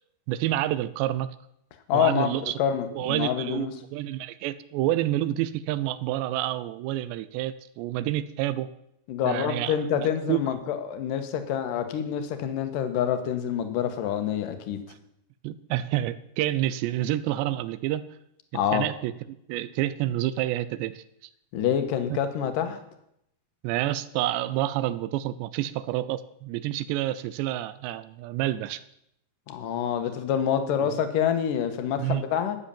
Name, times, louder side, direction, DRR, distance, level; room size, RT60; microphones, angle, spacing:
voice 1, 0.3-1.3 1.9-2.5 3.0-8.7 9.2-10.4 15.4-18.1 18.7-19.1 19.5-21.0 23.6-28.8 30.8-30.9 32.0-32.2, right 14 dB, 80° right, 15 dB, 2.8 m, -28 dB
voice 2, 1.9-3.7 9.1-14.8 18.5-18.8 21.5-22.8 29.5-32.6, left 9 dB, 65° left, 8 dB, 2.4 m, -27 dB
13.0 x 9.9 x 7.1 m, 0.77 s
omnidirectional pair, 5.1 m